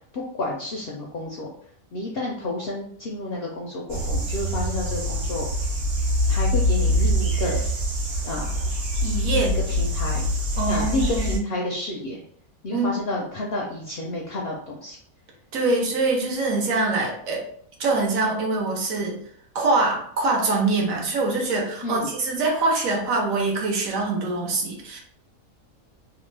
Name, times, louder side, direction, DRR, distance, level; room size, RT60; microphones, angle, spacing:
voice 1, 0.1-1.5 1.9-5.5 6.3-7.6 8.2-8.7 9.3-10.3 10.7-12.2 12.6-15.0 21.8-22.1, left 1 dB, 65° left, -2 dB, 0.6 m, -30 dB
sound 1, 3.9-11.4, equal, 50° right, 0.9 m, -24 dB
voice 2, 9.0-9.5 10.6-11.5 12.7-12.9 15.5-17.4 17.8-19.2 19.5-25.0, right 3 dB, 70° right, 0 dB, 1.1 m, -24 dB
2.9 x 2.1 x 3.1 m, 0.64 s
omnidirectional pair, 1.5 m